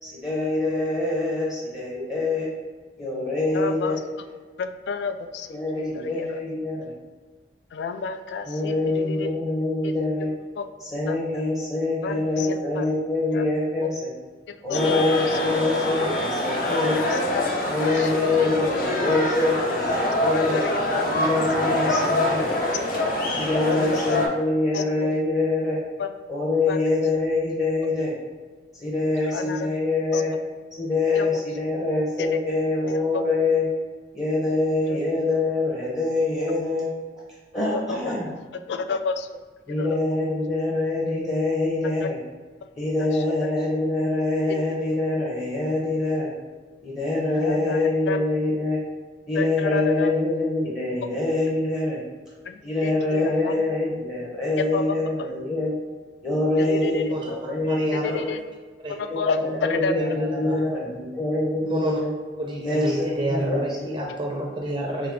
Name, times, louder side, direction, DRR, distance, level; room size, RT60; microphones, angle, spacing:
voice 1, 0.0-2.5 3.0-4.0 5.5-6.9 8.5-10.3 10.9-14.1 14.6-17.0 17.7-20.6 21.1-22.5 23.4-25.8 26.3-28.1 28.8-30.3 30.8-33.7 34.1-36.9 37.5-38.3 39.7-42.2 42.8-46.3 46.8-48.8 49.3-52.0 52.6-55.7 56.2-58.3 59.1-62.1 62.6-63.9, left 2 dB, 20° left, -6 dB, 0.8 m, -25 dB
voice 2, 3.5-4.0 4.6-6.4 7.7-9.3 9.8-9.9 10.6-10.7 11.1-11.2 12.0-12.9 13.3-13.5 13.8-13.9 14.7-15.4 16.9-18.5 20.3-21.0 21.6-21.7 23.7-24.2 24.7-25.1 26.0-26.1 26.7-26.8 29.3-29.7 30.1-30.2 31.2-31.4 32.2-32.3 32.9-33.0 34.9-35.1 37.7-38.1 38.7-39.3 39.8-40.0 42.0-42.1 43.0-43.2 47.4-47.8 48.1-48.2 49.3-50.1 52.5-53.6 54.6-55.0 56.6-57.1 57.9-58.4 59.0-59.9, left 5 dB, 70° left, 8 dB, 0.3 m, -30 dB
sound 1, 14.7-24.3, left 1 dB, 55° left, 0.8 m, -25 dB
voice 3, 57.7-58.2 58.8-58.9 60.0-60.1 60.3-60.5 61.6-62.0 62.4-65.1, right 1 dB, 25° right, -2 dB, 0.5 m, -29 dB
3.7 x 3.2 x 3.5 m, 1.4 s
head